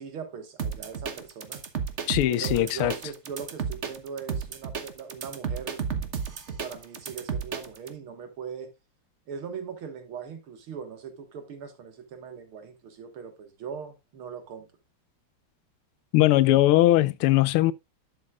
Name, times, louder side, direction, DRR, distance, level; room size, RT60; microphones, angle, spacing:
voice 1, 0.0-1.6 2.3-5.8 6.5-8.7 9.3-14.7, right 6 dB, 80° right, 2.5 m, -40 dB
sound 1, 0.6-7.9, right 6 dB, 40° right, 1.1 m, -33 dB
voice 2, 2.1-2.9 16.1-17.7, left 15 dB, 90° left, 1.5 m, -20 dB
11.5 x 7.5 x 2.4 m
omnidirectional pair, 2.3 m